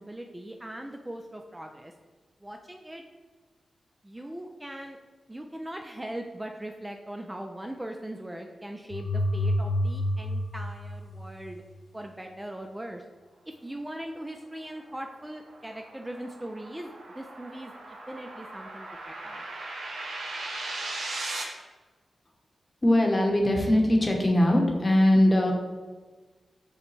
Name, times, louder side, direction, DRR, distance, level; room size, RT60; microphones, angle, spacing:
voice 1, 0.0-1.9 2.4-3.0 4.0-5.0 5.3-11.6 11.9-13.0 13.5-19.4, right 1 dB, 15° right, 3 dB, 0.3 m, -40 dB
sound 1, 8.9-11.8, left 1 dB, 75° left, 0.3 m, -29 dB
sound 2, 14.6-21.4, right 2 dB, 85° right, 0.8 m, -38 dB
voice 2, 22.8-25.5, left 1 dB, 30° left, 1 dB, 0.9 m, -21 dB
6.3 x 2.1 x 3.1 m, 1.3 s
cardioid pair, 50°, 0 cm